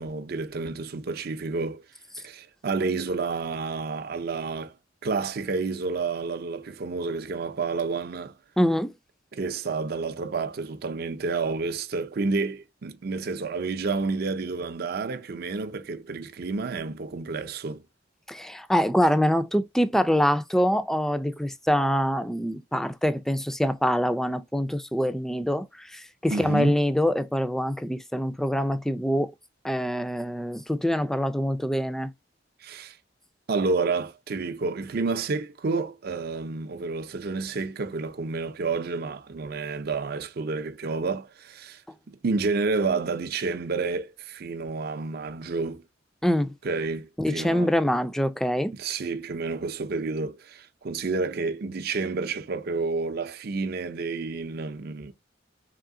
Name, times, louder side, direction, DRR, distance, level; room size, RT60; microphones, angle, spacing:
voice 1, 0.0-1.8 2.2-4.7 5.0-8.3 9.3-17.8 26.3-26.8 32.6-33.0 33.5-41.8 42.1-45.8 46.6-47.7 48.7-55.1, right 4 dB, 55° right, 0.5 m, -30 dB
voice 2, 8.6-8.9 18.3-29.3 29.6-32.1 46.2-46.5 47.2-48.7, equal, ahead, 0.4 m, -25 dB
3.7 x 3.2 x 3.6 m
head